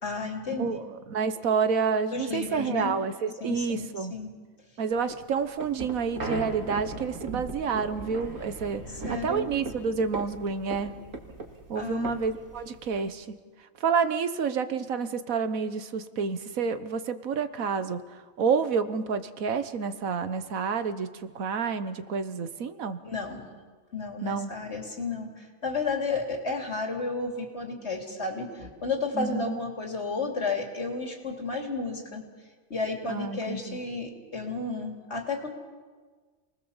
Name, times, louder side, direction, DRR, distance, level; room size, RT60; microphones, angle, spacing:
voice 1, 0.0-0.8 2.1-2.9 3.4-4.3 9.0-9.5 11.7-12.2 23.0-23.5 23.9-32.2 32.7-35.5, left 3 dB, 55° left, 2 dB, 3.3 m, -32 dB
voice 2, 0.6-4.1 4.8-8.8 9.1-10.9 11.7-13.2 13.8-18.0 18.4-23.0 24.2-24.5 29.1-29.6 33.1-33.8, right 5 dB, 85° right, 11 dB, 1.5 m, -29 dB
sound 1, 5.0-13.1, right 2 dB, 70° right, 2.6 m, -38 dB
28.5 x 20.0 x 7.2 m, 1.5 s
omnidirectional pair, 1.4 m